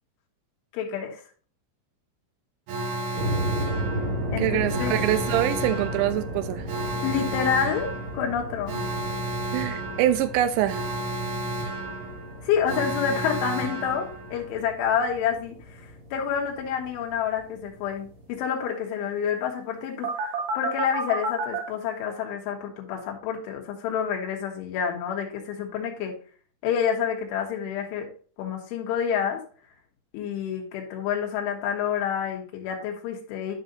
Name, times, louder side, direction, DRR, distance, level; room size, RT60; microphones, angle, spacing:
voice 1, 0.7-1.2 4.3-5.0 7.0-7.9 8.1-8.8 12.4-15.6 16.1-26.2 26.6-28.1 28.4-29.4 30.1-33.6, left 8 dB, 80° left, 0 dB, 4.0 m, -28 dB
Alarm, 2.7-14.6 20.0-21.6, right 2 dB, 60° right, 3.0 m, -32 dB
sound 1, 3.1-18.4, equal, 30° right, 3.2 m, -35 dB
voice 2, 4.4-6.7 9.5-10.9, right 12 dB, 80° right, 10 dB, 3.0 m, -25 dB
11.5 x 5.3 x 2.8 m, 0.41 s
omnidirectional pair, 5.5 m